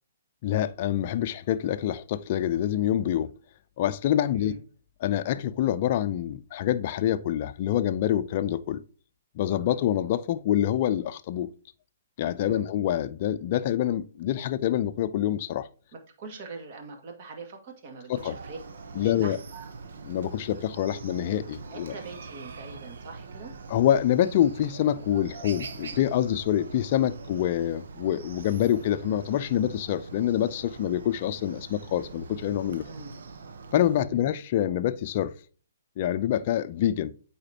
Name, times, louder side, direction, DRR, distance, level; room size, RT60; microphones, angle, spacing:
voice 1, 0.4-3.3 3.8-4.5 5.0-8.8 9.4-11.5 12.2-15.7 18.1-18.4 19.0-19.4 20.0-21.9 23.7-32.8 33.7-35.3 36.0-37.1, left 11 dB, 45° left, 0.5 m, -26 dB
voice 2, 16.2-18.6 18.9-19.7 21.7-23.5 32.9-33.1 34.0-34.3, right 3 dB, 45° right, 2.1 m, -43 dB
Chicken rooster, 18.1-34.0, right 4 dB, 70° right, 0.9 m, -43 dB
8.8 x 4.3 x 2.8 m
hypercardioid pair, 135°, 0 cm